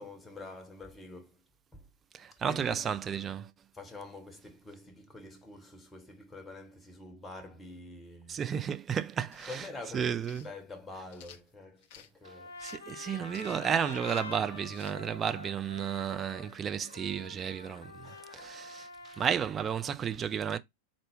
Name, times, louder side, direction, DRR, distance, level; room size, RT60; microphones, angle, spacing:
voice 1, 0.0-1.4 1.7-1.9 2.4-3.0 3.7-8.4 9.5-12.6 18.0-18.7, left 2 dB, 10° left, 0.9 m, -47 dB
voice 2, 2.1-3.5 8.3-9.6 9.9-10.5 12.6-20.6, right 8 dB, 25° right, 0.4 m, -33 dB
sound 1, 9.2-9.6 10.2-10.5 11.1-12.1 12.6-12.9 13.3-13.7 14.0-14.3 14.7-15.0, left 9 dB, 50° left, 0.5 m, -53 dB
Trumpet, 12.2-19.6, left 4 dB, 75° left, 1.0 m, -47 dB
3.8 x 2.2 x 3.4 m
figure-of-eight pair, 90°, 0 cm